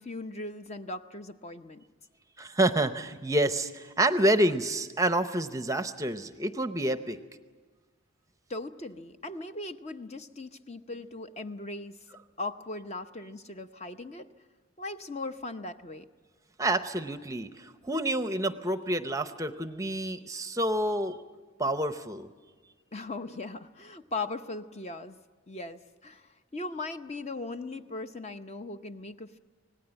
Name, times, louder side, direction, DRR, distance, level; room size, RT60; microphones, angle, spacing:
voice 1, 0.0-1.8 8.5-14.3 14.8-16.1 22.9-25.2 25.5-29.4, left 2 dB, 30° left, 9 dB, 0.7 m, -39 dB
voice 2, 2.4-7.2 16.6-21.2 21.6-22.3, right 1 dB, 15° right, 10 dB, 0.7 m, -28 dB
26.5 x 19.0 x 8.9 m, 1.4 s
head